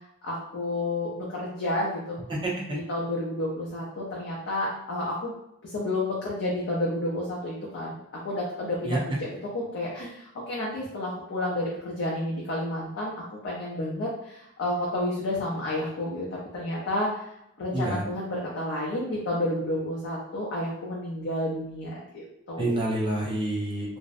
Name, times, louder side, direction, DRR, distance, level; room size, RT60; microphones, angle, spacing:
voice 1, 0.2-2.2 2.7-5.3 5.6-8.0 8.2-13.1 13.4-16.3 16.5-17.2 17.6-22.9, left 1 dB, 55° left, -4 dB, 0.4 m, -30 dB
voice 2, 22.6-24.0, right 1 dB, 20° right, -4 dB, 0.5 m, -27 dB
2.5 x 2.0 x 2.4 m, 0.81 s
head